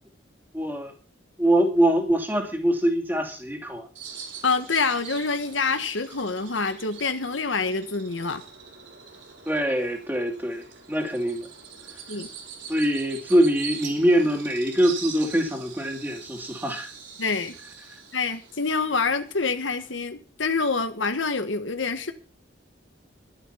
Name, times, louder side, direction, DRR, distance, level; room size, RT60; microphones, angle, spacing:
voice 1, 0.5-0.9 1.4-3.9 9.5-11.5 12.7-16.9, equal, 10° right, 3 dB, 2.7 m, -23 dB
Bird vocalization bird call bird song, 4.0-20.0, right 6 dB, 75° right, 5.0 m, -43 dB
voice 2, 4.4-8.4 12.1-12.3 17.2-17.5 18.1-22.1, left 4 dB, 80° left, 9 dB, 1.5 m, -26 dB
12.0 x 11.5 x 5.7 m, 0.36 s
head